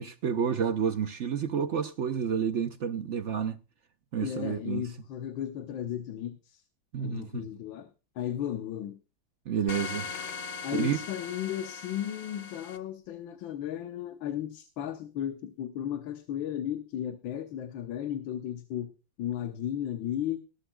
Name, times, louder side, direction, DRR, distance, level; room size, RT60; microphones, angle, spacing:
voice 1, 0.0-3.6 4.1-4.8 6.9-7.5 9.5-10.1 10.7-11.0, right 7 dB, 60° right, 0.7 m, -30 dB
voice 2, 4.2-6.6 7.0-9.0 10.6-18.9 19.2-20.4, left 10 dB, 85° left, 1.7 m, -35 dB
sound 1, 9.7-12.8, left 5 dB, 55° left, 1.3 m, -39 dB
20.0 x 11.5 x 2.2 m
omnidirectional pair, 2.1 m